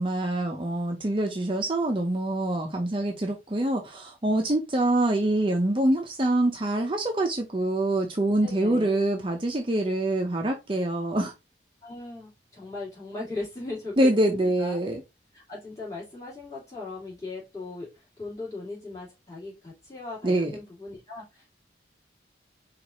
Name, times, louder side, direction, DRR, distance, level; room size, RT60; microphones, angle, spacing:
voice 1, 0.0-11.3 14.0-15.0 20.2-20.5, right 1 dB, 30° right, 0.5 m, -25 dB
voice 2, 8.4-8.9 11.8-14.8 15.3-21.5, left 3 dB, 20° left, 2.5 m, -38 dB
4.5 x 2.4 x 4.1 m
head